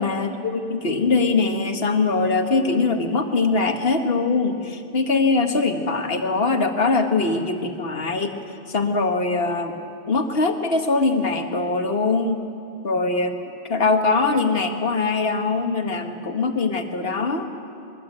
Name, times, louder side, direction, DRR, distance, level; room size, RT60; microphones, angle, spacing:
voice 1, 0.0-8.3 8.7-9.8 10.1-12.4 12.8-13.4 13.6-17.5, left 3 dB, 65° left, 5 dB, 1.8 m, -22 dB
22.0 x 22.0 x 8.8 m, 2.7 s
omnidirectional pair, 1.1 m